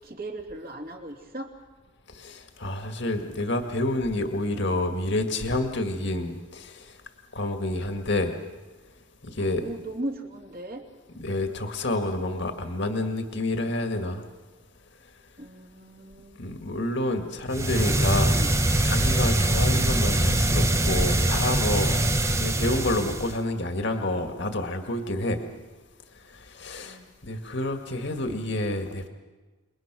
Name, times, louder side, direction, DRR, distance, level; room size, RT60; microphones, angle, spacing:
voice 1, 0.0-1.5 9.4-10.8 15.4-16.4 17.5-17.9 18.2-18.5 26.8-27.1, right 1 dB, 45° right, 2 dB, 2.9 m, -38 dB
voice 2, 2.1-7.0 7.3-8.4 9.2-9.7 11.2-14.2 16.4-18.3 18.8-22.0 22.2-25.4 26.1-29.1, left 1 dB, 55° left, 5 dB, 2.0 m, -29 dB
sound 1, 17.5-23.4, right 1 dB, 15° right, 0.9 m, -23 dB
28.5 x 21.5 x 6.2 m, 1.3 s
head